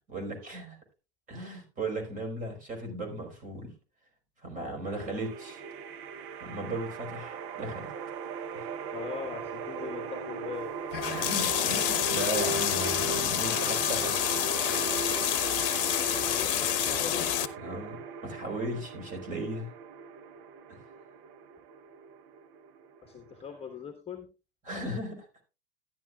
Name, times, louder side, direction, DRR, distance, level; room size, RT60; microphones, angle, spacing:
voice 1, 0.1-0.8 1.3-3.7 4.4-5.6 6.4-7.9 8.5-8.7 11.0-14.2 17.6-19.7 20.7-20.8 24.7-25.3, right 1 dB, 25° right, 2 dB, 4.6 m, -36 dB
sound 1, 4.8-23.8, right 5 dB, 40° right, 0.9 m, -38 dB
voice 2, 8.9-10.7 16.1-17.3 23.0-24.3, left 6 dB, 20° left, 5 dB, 1.5 m, -40 dB
sound 2, 10.9-17.5, left 11 dB, 55° left, 1.0 m, -28 dB
13.0 x 10.5 x 2.4 m, 0.31 s
figure-of-eight pair, 90°, 33 cm